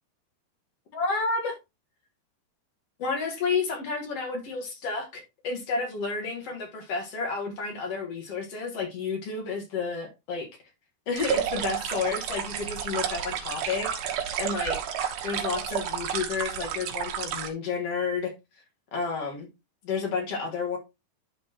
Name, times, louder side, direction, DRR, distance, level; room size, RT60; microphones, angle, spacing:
voice 1, 0.9-1.5 3.0-10.5 11.1-14.8 15.2-18.3 18.9-19.5 19.8-20.8, left 4 dB, 55° left, 1.8 m, -31 dB
sound 1, 11.2-17.5, right 9 dB, 70° right, 2.8 m, -31 dB
12.0 x 4.5 x 2.9 m
omnidirectional pair, 4.9 m